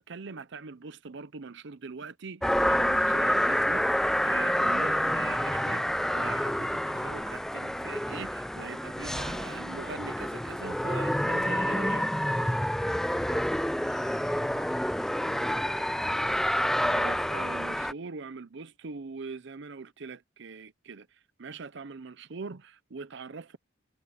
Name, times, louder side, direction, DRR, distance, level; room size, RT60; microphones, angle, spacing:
voice 1, 0.0-12.1 16.8-23.6, right 4 dB, 65° right, 0.7 m, -42 dB
sound 1, 2.4-17.9, equal, ahead, 0.5 m, -28 dB
voice 2, 13.3-16.1, left 2 dB, 35° left, 4.3 m, -50 dB
head